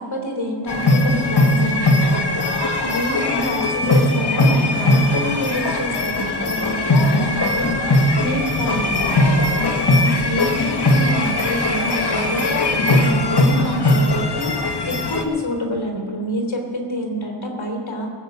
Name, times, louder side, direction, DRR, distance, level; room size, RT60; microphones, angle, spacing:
voice 1, 0.0-7.9 8.2-9.6 10.0-18.1, equal, 75° left, 0 dB, 3.3 m, -27 dB
sound 1, 0.7-15.2, left 1 dB, 55° left, 1.3 m, -19 dB
19.5 x 8.4 x 5.7 m, 2.3 s
wide cardioid pair, 65°, 47 cm